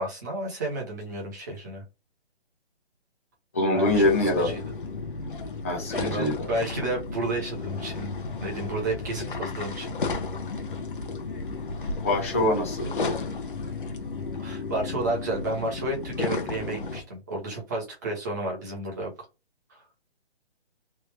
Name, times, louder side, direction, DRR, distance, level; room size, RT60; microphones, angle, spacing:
voice 1, 0.0-1.8 3.7-4.1 4.4-4.6 5.9-8.1 8.4-10.3 14.4-19.1 19.7-19.8, right 2 dB, 15° right, 1.1 m, -31 dB
voice 2, 3.5-4.5 5.6-6.5 12.0-12.9, left 1 dB, 15° left, 0.8 m, -24 dB
sound 1, 3.9-17.0, left 3 dB, 50° left, 1.0 m, -33 dB
3.3 x 2.7 x 3.3 m
hypercardioid pair, 170°, 33 cm